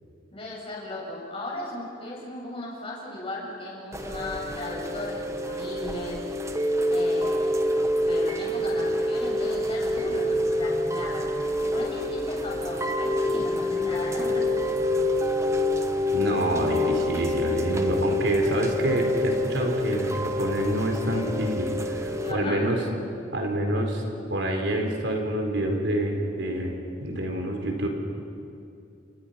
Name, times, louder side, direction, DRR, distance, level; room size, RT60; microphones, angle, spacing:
voice 1, 0.3-6.3 6.9-7.7 8.0-11.3 11.6-14.5 22.2-22.6, left 1 dB, 30° left, -4 dB, 7.5 m, -36 dB
Chime / Rain, 3.9-22.3, left 1 dB, 15° right, 1.2 m, -27 dB
voice 2, 16.1-22.8 23.3-24.0 24.3-27.9, right 1 dB, 65° right, 2 dB, 4.1 m, -27 dB
29.5 x 29.5 x 5.8 m, 2.6 s
head